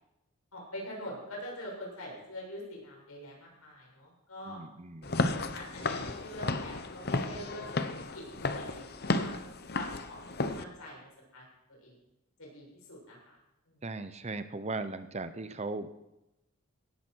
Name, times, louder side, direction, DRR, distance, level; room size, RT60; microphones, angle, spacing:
voice 1, 0.5-4.6 5.5-11.9 12.4-13.4 13.7-13.8, equal, 80° left, -3 dB, 7.6 m, -45 dB
voice 2, 4.5-5.2 13.8-15.9, right 3 dB, 30° right, 11 dB, 0.7 m, -38 dB
Walk footsteps / Siren, 5.0-10.6, left 3 dB, 45° left, 0.9 m, -33 dB
17.5 x 14.0 x 4.6 m, 0.91 s
head